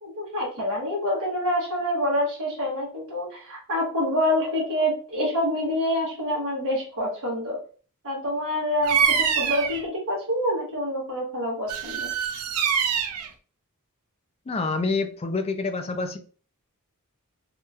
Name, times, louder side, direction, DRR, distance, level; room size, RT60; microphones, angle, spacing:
voice 1, 0.0-7.6 8.0-12.1, equal, 65° right, -5 dB, 1.0 m, -27 dB
Bird vocalization bird call bird song, 8.8-9.8 11.7-13.3, right 7 dB, 80° right, 0.5 m, -24 dB
voice 2, 14.5-16.2, left 3 dB, 30° left, 7 dB, 0.4 m, -27 dB
3.0 x 3.0 x 2.3 m, 0.41 s
head